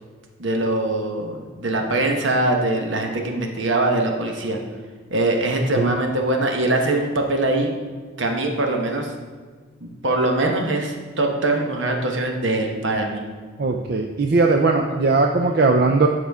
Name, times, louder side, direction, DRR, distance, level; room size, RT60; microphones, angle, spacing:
voice 1, 0.4-4.6 5.1-7.7 8.2-9.1 9.8-13.2, right 2 dB, 75° right, 2 dB, 1.1 m, -22 dB
voice 2, 13.6-16.1, right 3 dB, 50° right, 3 dB, 0.4 m, -19 dB
12.0 x 5.0 x 3.6 m, 1.5 s
head